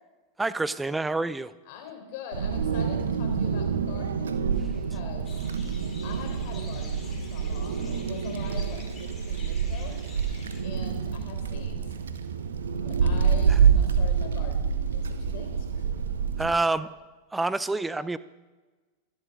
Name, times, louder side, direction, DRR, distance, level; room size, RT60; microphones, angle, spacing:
voice 1, 0.4-1.5 16.4-16.9 17.3-18.2, right 3 dB, 10° right, 16 dB, 0.6 m, -27 dB
voice 2, 1.7-4.4 4.7-5.4 6.0-10.0 10.6-12.0 12.8-15.8 16.8-16.9, left 7 dB, 50° left, 4 dB, 3.9 m, -43 dB
Wind, 2.3-16.5, right 6 dB, 65° right, 1.1 m, -27 dB
sound 1, 5.2-10.6, left 4 dB, 20° left, 4.0 m, -49 dB
25.0 x 12.0 x 3.7 m, 1.2 s
figure-of-eight pair, 90°, 0 cm